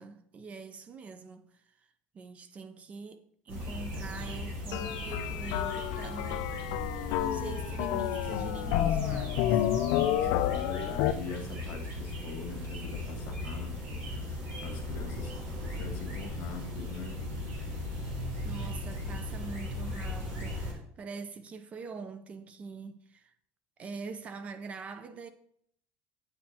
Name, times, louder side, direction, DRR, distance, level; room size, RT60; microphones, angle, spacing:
voice 1, 0.0-1.9 2.1-6.5 7.2-9.7 18.4-23.3 23.8-25.3, right 4 dB, 30° right, 0.5 m, -44 dB
sound 1, 3.5-20.7, left 1 dB, 60° right, 3.2 m, -37 dB
sound 2, 4.7-11.1, left 12 dB, 75° left, 0.4 m, -30 dB
voice 2, 10.2-15.3 15.7-17.2, left 5 dB, 55° left, 1.4 m, -43 dB
8.4 x 6.5 x 2.8 m
cardioid pair, 140°, 4 cm